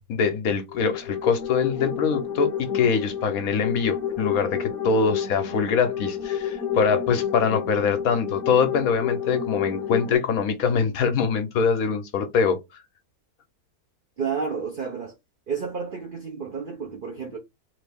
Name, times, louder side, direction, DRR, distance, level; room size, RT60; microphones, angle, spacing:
voice 1, 0.1-12.8, left 6 dB, 70° left, 1.1 m, -23 dB
sound 1, 0.7-10.1, left 8 dB, 45° left, 0.9 m, -30 dB
voice 2, 14.2-15.1 15.5-17.4, right 5 dB, 45° right, 0.8 m, -31 dB
3.1 x 2.7 x 3.4 m
omnidirectional pair, 1.6 m